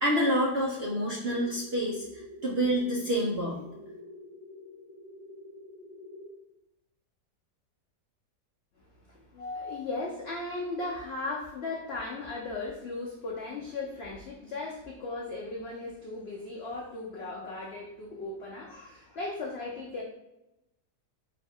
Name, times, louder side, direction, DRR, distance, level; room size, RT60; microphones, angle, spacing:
voice 1, 0.0-3.7, equal, 60° right, -4 dB, 0.6 m, -28 dB
sound 1, 1.3-6.3, left 2 dB, 45° right, 1.7 m, -47 dB
voice 2, 9.1-20.0, left 3 dB, 80° left, -2 dB, 0.5 m, -37 dB
3.8 x 2.3 x 4.2 m, 0.92 s
omnidirectional pair, 1.8 m